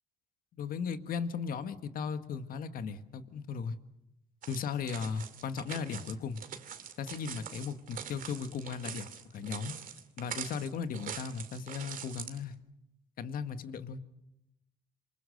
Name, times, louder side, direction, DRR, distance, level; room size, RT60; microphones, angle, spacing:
voice 1, 0.5-3.8 4.5-6.4 7.0-9.7 10.2-12.5 13.2-14.0, left 6 dB, 60° left, 10 dB, 1.7 m, -37 dB
sound 1, 4.4-12.4, right 8 dB, 55° right, 2.4 m, -44 dB
27.5 x 24.0 x 6.6 m, 0.86 s
cardioid pair, 110°, 17 cm